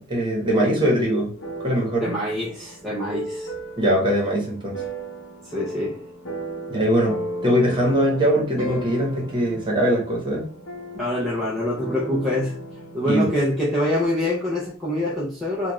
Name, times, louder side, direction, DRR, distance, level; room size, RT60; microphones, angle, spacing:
voice 1, 0.0-1.3 1.6-2.1 3.8-4.7 6.7-10.4 13.0-13.3, equal, 25° right, -2 dB, 1.2 m, -21 dB
sound 1, 1.4-14.0, right 1 dB, 65° left, 0.9 m, -36 dB
voice 2, 2.0-3.5 5.4-6.0 11.0-12.6 12.9-15.7, left 1 dB, ahead, -8 dB, 0.6 m, -25 dB
3.3 x 2.4 x 3.0 m, 0.41 s
head